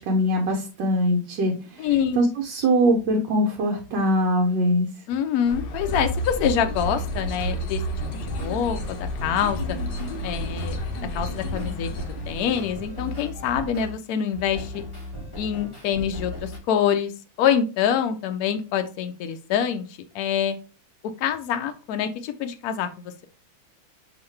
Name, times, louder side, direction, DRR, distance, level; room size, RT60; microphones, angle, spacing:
voice 1, 0.0-1.9 2.1-4.9, equal, 70° right, 1 dB, 1.4 m, -22 dB
voice 2, 1.8-2.2 5.1-7.8 8.2-9.8 10.2-10.8 11.1-11.9 12.3-14.8 15.4-17.1 17.4-19.8 20.1-20.6 21.2-23.2, left 8 dB, 85° left, 8 dB, 0.8 m, -25 dB
sound 1, 5.5-13.2, equal, 70° left, 1.3 m, -31 dB
sound 2, 7.3-7.6 8.0-13.9 14.3-16.6, left 1 dB, 15° left, 2.5 m, -37 dB
4.8 x 3.1 x 3.2 m, 0.34 s
omnidirectional pair, 2.1 m